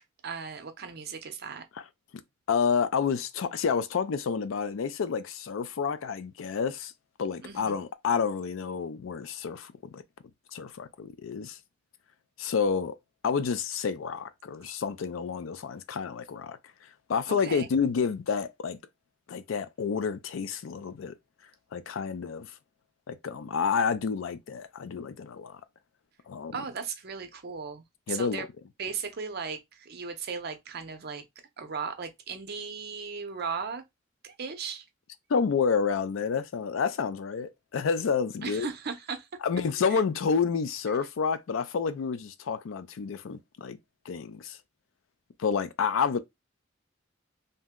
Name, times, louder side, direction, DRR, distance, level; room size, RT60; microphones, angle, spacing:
voice 1, 0.2-1.6 7.4-7.9 17.3-17.7 26.5-28.5 28.8-31.2 31.6-33.8 34.2-34.8 38.4-39.3 39.9-40.0, right 5 dB, 55° right, 0.6 m, -37 dB
voice 2, 2.5-6.9 7.2-10.0 10.5-11.6 12.4-13.0 13.2-16.6 17.1-18.8 19.3-21.1 21.7-22.5 23.1-25.6 26.3-26.6 28.1-28.4 35.3-38.7 39.4-43.8 44.1-44.6 45.4-46.2, left 6 dB, 85° left, 0.4 m, -29 dB
2.7 x 2.1 x 3.6 m
head